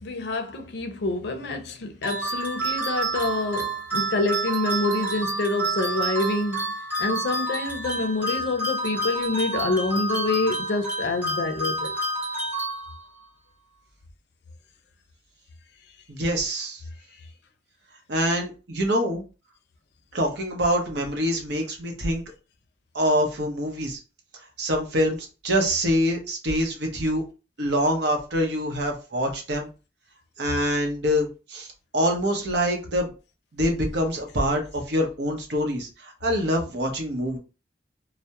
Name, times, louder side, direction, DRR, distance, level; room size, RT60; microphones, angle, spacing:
voice 1, 0.0-6.6 7.0-11.9, left 2 dB, 65° left, 0.4 m, -27 dB
sound 1, 2.0-13.2, right 2 dB, 10° right, 0.6 m, -29 dB
voice 2, 16.1-16.8 18.1-19.2 20.1-22.2 22.9-24.0 24.6-27.2 27.6-29.7 30.4-31.7 31.9-33.1 33.5-37.4, equal, 65° right, 0.7 m, -25 dB
2.2 x 2.0 x 2.8 m
head